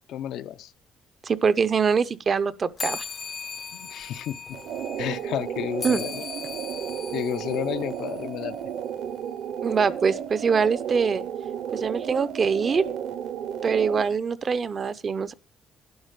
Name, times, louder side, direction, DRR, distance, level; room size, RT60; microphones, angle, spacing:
voice 1, 0.1-0.7 3.7-4.6 5.0-6.3 7.1-8.6, left 11 dB, 70° left, 0.6 m, -31 dB
voice 2, 1.2-3.1 5.8-6.0 9.6-11.2 11.7-12.8 13.6-15.3, right 5 dB, 30° right, 0.6 m, -23 dB
sound 1, 2.8-8.6, left 6 dB, 30° left, 0.6 m, -38 dB
sound 2, 4.5-14.1, right 9 dB, 60° right, 0.9 m, -33 dB
12.0 x 10.5 x 5.0 m
cardioid pair, 175°, 0 cm